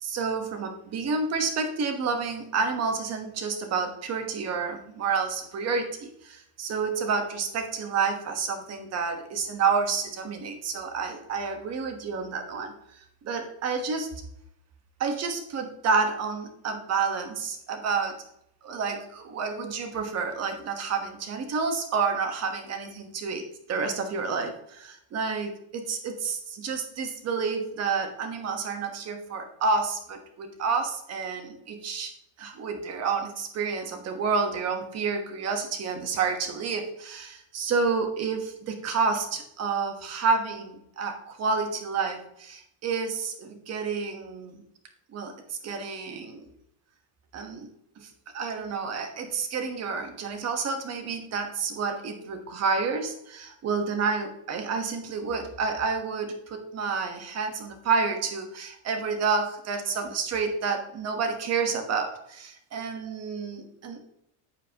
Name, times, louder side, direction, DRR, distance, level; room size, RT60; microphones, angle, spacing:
voice 1, 0.0-14.1 15.0-18.2 18.6-23.4 23.7-32.1 32.4-44.6 45.1-46.5 47.3-64.0, right 5 dB, 30° right, 5 dB, 1.3 m, -29 dB
8.8 x 8.0 x 2.9 m, 0.75 s
cardioid pair, 165°, 48 cm